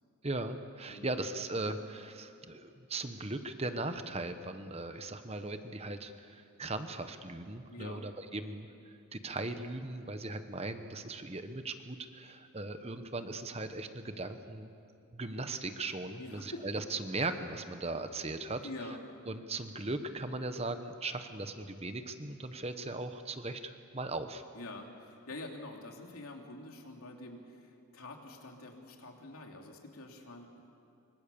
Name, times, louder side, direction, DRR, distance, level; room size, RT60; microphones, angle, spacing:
voice 1, 0.2-14.7 15.1-19.0 19.3-24.4, right 2 dB, 30° right, 8 dB, 1.1 m, -38 dB
voice 2, 7.7-8.0 16.2-16.6 18.6-19.0 24.5-30.7, left 2 dB, 85° left, 2 dB, 3.0 m, -46 dB
25.0 x 24.5 x 7.0 m, 2.6 s
head